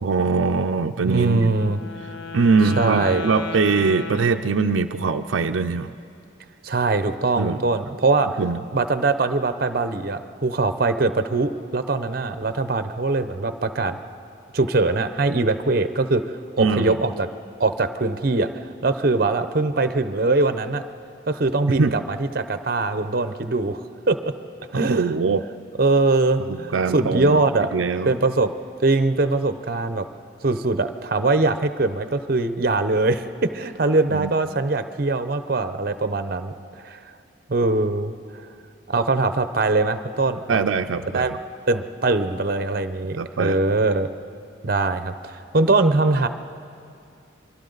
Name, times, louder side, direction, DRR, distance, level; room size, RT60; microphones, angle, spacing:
voice 1, 0.0-1.5 2.3-5.9 7.4-7.6 8.4-8.6 16.6-16.9 21.7-21.9 24.9-25.4 26.5-27.4 27.7-28.1 34.1-34.4 40.5-41.2 43.2-43.6, right 4 dB, 85° right, 7 dB, 0.5 m, -22 dB
voice 2, 1.0-1.8 2.8-3.3 6.6-8.3 8.7-14.0 14.5-16.2 16.6-17.3 17.6-18.5 18.8-20.8 21.3-23.8 24.1-24.3 24.7-25.2 25.8-27.7 28.1-28.5 28.8-30.1 30.4-36.5 36.8-37.0 37.5-38.1 38.9-40.6 41.1-41.3 41.7-44.1 44.6-46.3, right 3 dB, 50° right, 10 dB, 0.8 m, -22 dB
Wind instrument woodwind instrument, 1.5-5.1, left 3 dB, 60° left, 0.8 m, -34 dB
28.5 x 23.0 x 4.0 m, 2.5 s
head